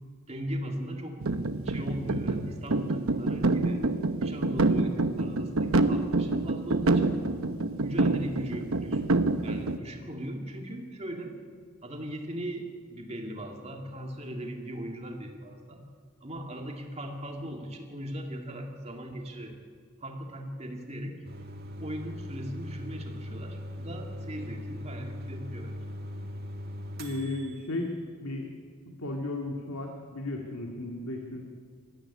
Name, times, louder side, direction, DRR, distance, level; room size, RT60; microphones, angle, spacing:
voice 1, 0.3-1.2 1.6-3.9 4.2-7.2 7.8-9.0 9.4-11.3 11.8-15.8 16.2-19.6 20.0-21.2 21.8-25.8, equal, 30° right, 2 dB, 2.4 m, -38 dB
sound 1, 1.2-9.8, right 2 dB, 85° right, 1.0 m, -27 dB
sound 2, 21.2-27.8, equal, 45° right, 2.1 m, -40 dB
voice 2, 27.0-27.9 28.2-28.5 29.0-31.4, left 2 dB, 85° left, 1 dB, 2.0 m, -34 dB
20.5 x 13.5 x 9.9 m, 2.1 s
head